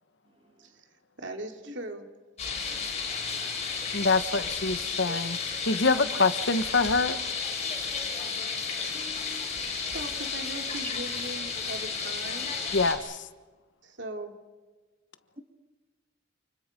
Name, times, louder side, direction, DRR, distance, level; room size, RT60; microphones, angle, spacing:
voice 1, 1.2-2.1 5.9-6.0 9.9-12.5 13.8-14.3, right 2 dB, 65° right, 4 dB, 3.1 m, -39 dB
sound 1, 2.4-13.0, left 5 dB, 35° left, 6.1 m, -33 dB
voice 2, 2.6-3.2 3.9-4.0 5.1-5.2 5.8-5.9 8.9-9.5 9.8-9.9, equal, 30° right, 5 dB, 2.1 m, -49 dB
voice 3, 3.9-5.4 5.6-7.2 12.7-13.2, left 3 dB, 65° left, 11 dB, 1.3 m, -25 dB
29.5 x 28.5 x 5.3 m, 1.3 s
head